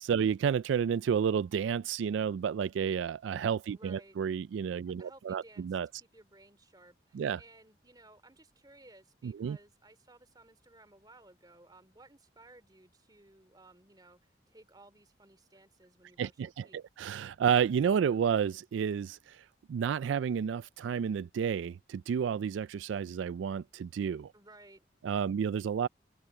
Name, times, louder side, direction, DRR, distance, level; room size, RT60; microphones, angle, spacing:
voice 1, 0.0-5.9 7.1-7.4 9.2-9.6 16.2-19.4 19.7-24.3 25.0-25.9, right 7 dB, 85° right, 0.3 m, -31 dB
voice 2, 3.7-4.2 4.9-16.8 24.3-24.9, right 2 dB, 20° right, 2.8 m, -58 dB
head